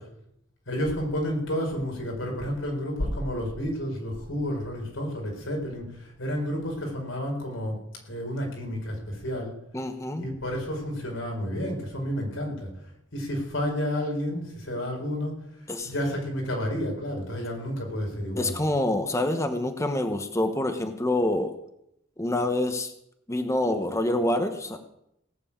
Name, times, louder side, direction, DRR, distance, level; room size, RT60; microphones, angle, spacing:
voice 1, 0.7-7.8 8.1-9.5 10.2-12.7 13.1-15.4 15.8-18.5, equal, 90° left, 1 dB, 4.8 m, -30 dB
voice 2, 9.7-10.3 15.7-15.9 18.4-21.5 22.2-22.9 23.3-24.8, left 1 dB, 15° left, 7 dB, 0.9 m, -26 dB
17.5 x 6.9 x 8.7 m, 0.78 s
head